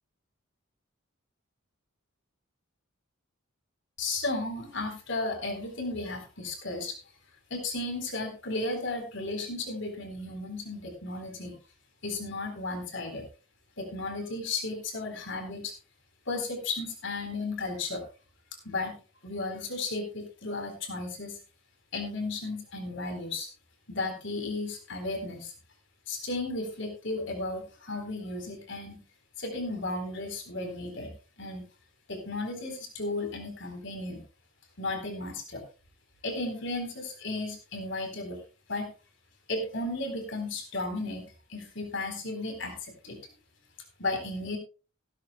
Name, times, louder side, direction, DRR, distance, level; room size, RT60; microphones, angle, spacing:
voice 1, 4.0-7.0 7.5-11.6 12.0-13.2 13.8-15.7 16.3-18.0 18.6-19.0 19.2-21.4 21.9-23.5 23.9-25.5 26.1-29.0 29.4-31.1 31.4-31.7 32.1-34.2 34.8-35.6 36.2-38.4 38.7-38.9 39.5-43.2 44.0-44.6, left 2 dB, 60° left, 5 dB, 4.1 m, -34 dB
16.0 x 13.0 x 2.3 m, 0.33 s
head